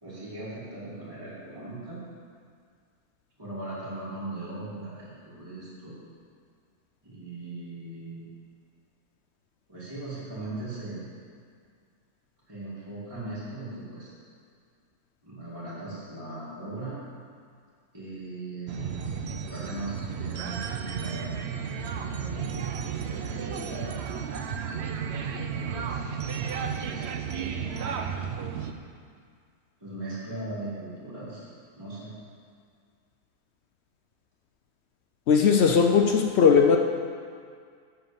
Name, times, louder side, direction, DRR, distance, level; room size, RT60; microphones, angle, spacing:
voice 1, 0.0-2.0 3.4-6.0 7.0-8.3 9.7-11.0 12.5-14.1 15.2-17.0 17.9-19.0 19.4-21.3 21.9-22.6 23.0-23.9 25.5-26.1 26.7-27.7 29.8-31.5 31.8-32.1, right 2 dB, 15° right, -10 dB, 1.9 m, -39 dB
sound 1, 18.7-28.7, right 7 dB, 65° right, 0.7 m, -33 dB
voice 2, 35.3-36.8, left 6 dB, 65° left, 4 dB, 0.6 m, -19 dB
10.0 x 4.0 x 6.9 m, 2.1 s
omnidirectional pair, 1.6 m